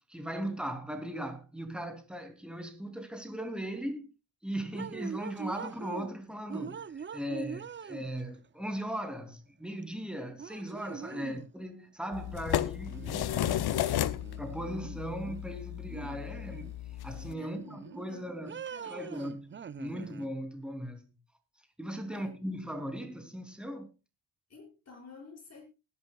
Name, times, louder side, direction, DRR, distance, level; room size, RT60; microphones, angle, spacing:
voice 1, 0.1-4.1 4.4-13.3 14.4-16.7 17.0-21.0 21.8-23.9, equal, ahead, 3.1 m, -38 dB
sound 1, 4.7-6.1 6.5-8.4 9.8-9.9 10.4-11.5 12.9-13.8 14.2-15.4 15.9-16.8 17.1-18.1 18.5-20.3, right 7 dB, 30° right, 0.6 m, -43 dB
voice 2, 11.1-11.4 13.3-14.2 17.4-18.3 18.7-19.2 22.1-22.4 24.5-25.6, left 4 dB, 40° left, 7.6 m, -51 dB
sound 2, 12.1-17.3, left 12 dB, 65° left, 0.9 m, -33 dB
20.5 x 11.0 x 2.3 m
cardioid pair, 95°, 42 cm